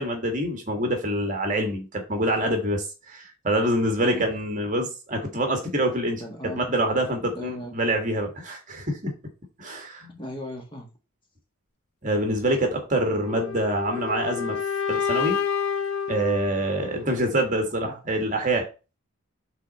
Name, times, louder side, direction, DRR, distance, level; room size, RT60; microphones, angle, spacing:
voice 1, 0.0-6.2 6.6-9.1 9.6-10.1 12.0-14.6 14.9-15.4 16.1-18.7, right 1 dB, 40° right, 1.8 m, -26 dB
voice 2, 6.2-6.6 7.3-7.7 10.2-10.9 17.8-18.0, equal, 25° left, 1.6 m, -36 dB
sound 1, 13.2-17.3, left 7 dB, 75° left, 0.8 m, -29 dB
6.0 x 4.1 x 5.7 m
head